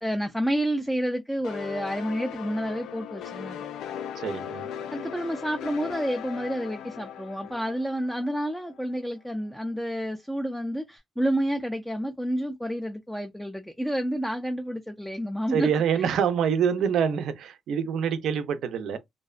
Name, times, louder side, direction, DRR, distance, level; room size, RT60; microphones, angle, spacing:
voice 1, 0.0-3.7 4.9-15.7 16.0-16.1, equal, ahead, 0.3 m, -29 dB
sound 1, 1.4-8.9, left 9 dB, 85° left, 0.3 m, -38 dB
voice 2, 4.2-4.7 15.5-19.0, right 7 dB, 70° right, 0.4 m, -26 dB
2.5 x 2.1 x 2.3 m
cardioid pair, 140°, 0 cm